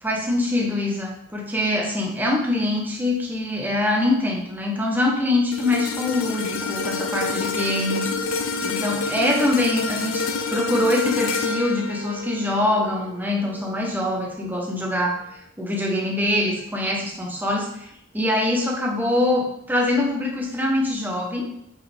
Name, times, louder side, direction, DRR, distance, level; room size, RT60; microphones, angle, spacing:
voice 1, 0.0-8.1 8.6-15.2 15.6-21.5, left 1 dB, 10° right, -1 dB, 1.2 m, -24 dB
sound 1, 5.5-13.9 14.3-14.5, left 4 dB, 85° left, 0.7 m, -28 dB
8.7 x 5.2 x 3.6 m, 0.72 s
head